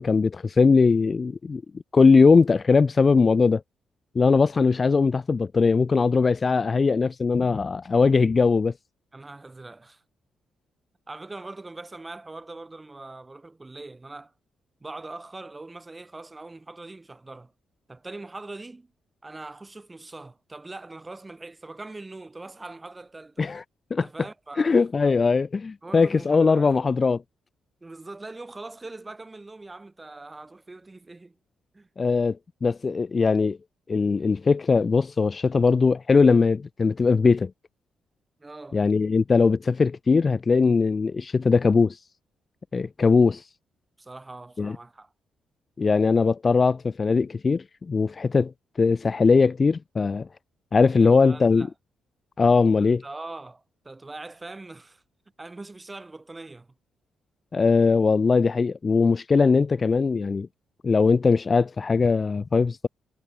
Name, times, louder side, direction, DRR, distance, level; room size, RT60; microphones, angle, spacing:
voice 1, 0.0-1.6 1.9-3.6 4.1-8.7 23.4-23.6 23.9-24.1 24.6-27.2 32.0-33.6 33.9-37.5 38.7-42.0 42.7-43.4 44.6-44.8 45.8-48.5 48.8-50.3 50.7-51.7 52.4-53.0 57.5-60.5 60.8-62.9, left 4 dB, 25° left, 1.0 m, -20 dB
voice 2, 9.1-10.0 11.1-14.3 14.8-17.5 17.9-18.9 19.2-23.5 24.0-24.8 25.8-26.7 27.8-31.4 31.7-31.9 38.4-38.8 44.0-45.1 51.0-51.7 52.8-55.0 55.4-56.7, right 2 dB, 15° right, 5.5 m, -42 dB
cardioid pair, 145°, 0 cm